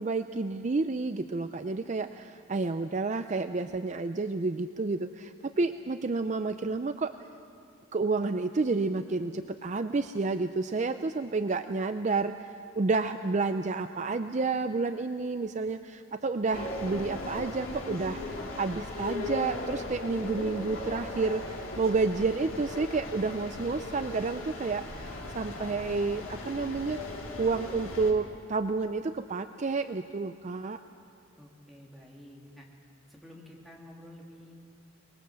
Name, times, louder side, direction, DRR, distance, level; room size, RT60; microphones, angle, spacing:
voice 1, 0.0-7.1 7.9-27.0 27.4-30.8, right 3 dB, 35° right, 9 dB, 0.5 m, -30 dB
sound 1, 16.5-28.1, left 2 dB, 85° left, 3.2 m, -38 dB
voice 2, 31.4-32.7 33.1-34.5, left 1 dB, ahead, -3 dB, 2.8 m, -50 dB
24.0 x 21.0 x 7.5 m, 2.5 s
head